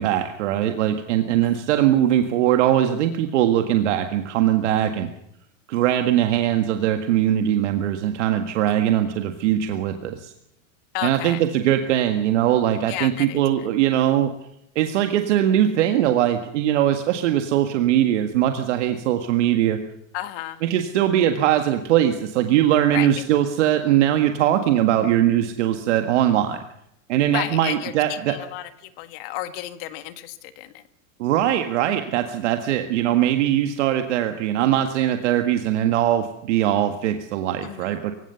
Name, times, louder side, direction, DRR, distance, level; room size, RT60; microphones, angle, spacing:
voice 1, 0.0-5.1 5.7-10.3 11.0-14.3 14.8-19.8 20.6-26.6 27.1-28.3 31.2-38.1, right 11 dB, 55° right, 6 dB, 1.7 m, -21 dB
voice 2, 10.9-11.5 12.9-13.7 20.1-20.6 22.9-23.1 27.3-30.8 37.6-38.0, left 14 dB, 45° left, 11 dB, 1.6 m, -32 dB
24.5 x 16.0 x 6.9 m, 0.80 s
supercardioid pair, 160°, 41 cm